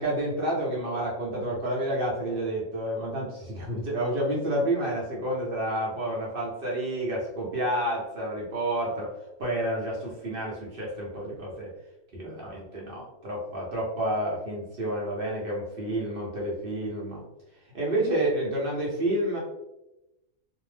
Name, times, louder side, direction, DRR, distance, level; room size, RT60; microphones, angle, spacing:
voice 1, 0.0-9.1 9.4-11.7 12.1-17.2 17.7-19.4, right 1 dB, 50° right, -4 dB, 0.7 m, -29 dB
2.6 x 2.0 x 3.2 m, 0.94 s
omnidirectional pair, 1.5 m